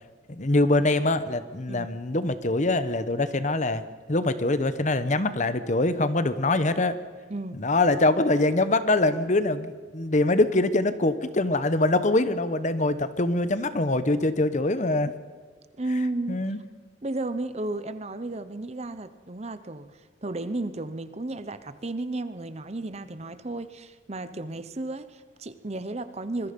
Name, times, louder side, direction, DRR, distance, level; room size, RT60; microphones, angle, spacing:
voice 1, 0.3-3.8 4.1-7.0 7.5-15.1 16.3-16.6, left 2 dB, 40° left, 13 dB, 1.0 m, -24 dB
voice 2, 7.3-7.6 15.8-16.4 17.0-26.5, right 2 dB, 35° right, 12 dB, 0.8 m, -33 dB
25.5 x 21.5 x 5.3 m, 1.5 s
head